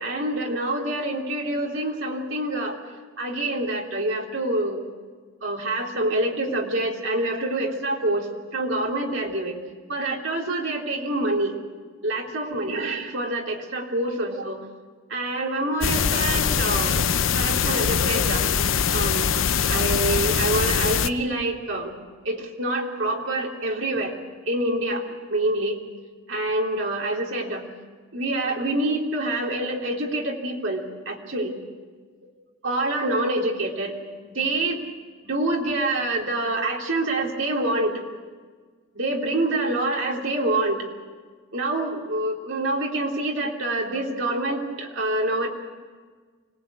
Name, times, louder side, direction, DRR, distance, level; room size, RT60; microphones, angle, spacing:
voice 1, 0.0-2.8 3.2-4.8 5.4-8.3 8.5-9.6 9.9-11.5 12.0-14.6 15.1-18.4 18.9-19.4 19.7-22.0 22.2-24.1 24.5-25.0 25.3-25.8 26.3-27.6 28.1-31.5 32.6-34.8 35.2-38.0 38.9-40.8 41.5-45.5, right 2 dB, 70° right, 0 dB, 3.4 m, -26 dB
sound 1, 15.8-21.1, left 7 dB, 75° left, 0.7 m, -22 dB
25.0 x 19.5 x 8.4 m, 1.5 s
head